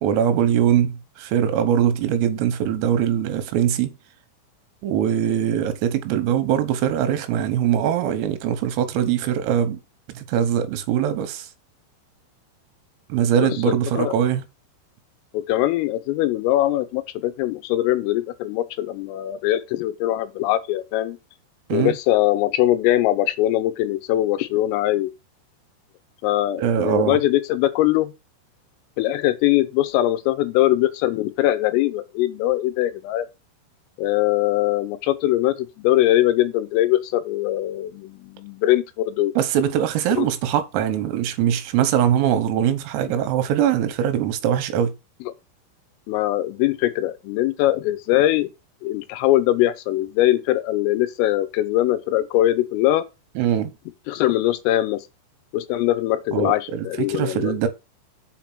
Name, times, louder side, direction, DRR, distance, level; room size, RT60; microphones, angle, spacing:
voice 1, 0.0-3.9 4.8-9.8 10.2-11.5 13.1-14.4 21.7-21.9 26.6-27.2 39.4-44.9 53.4-53.7 56.3-57.7, right 9 dB, 85° right, 3.6 m, -22 dB
voice 2, 13.4-14.1 15.3-21.2 21.7-25.1 26.2-28.1 29.0-33.3 34.0-39.3 40.2-40.3 46.1-48.5 48.8-53.0 54.1-55.0 55.5-57.6, left 14 dB, 80° left, 3.4 m, -21 dB
7.6 x 5.0 x 6.0 m
omnidirectional pair, 6.0 m